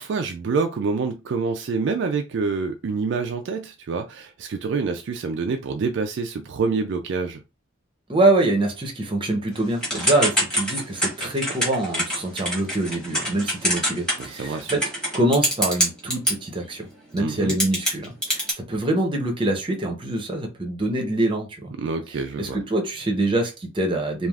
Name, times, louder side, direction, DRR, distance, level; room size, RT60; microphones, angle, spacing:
voice 1, 0.0-7.4 14.2-14.8 17.2-17.5 21.8-22.6, right 4 dB, 55° right, 0.3 m, -27 dB
voice 2, 8.1-14.8 15.1-16.9 17.1-21.7 22.4-24.3, right 2 dB, 25° right, 0.6 m, -24 dB
Typing / Telephone, 9.8-16.3 17.2-17.3 17.5-18.5, equal, 5° left, 1.2 m, -24 dB
3.3 x 2.4 x 2.3 m
head